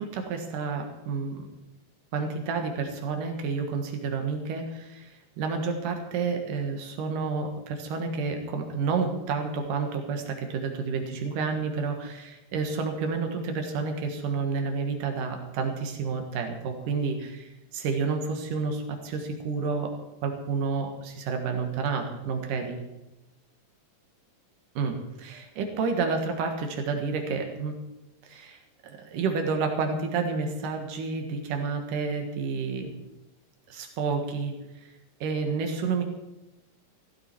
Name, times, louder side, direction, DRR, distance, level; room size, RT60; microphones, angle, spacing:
voice 1, 0.0-1.5 2.1-19.9 20.2-22.8 24.7-27.7 28.2-28.6 28.8-32.9 33.7-34.5 35.2-36.0, right 4 dB, 85° right, 4 dB, 3.3 m, -30 dB
15.5 x 13.5 x 4.6 m, 0.98 s
omnidirectional pair, 3.6 m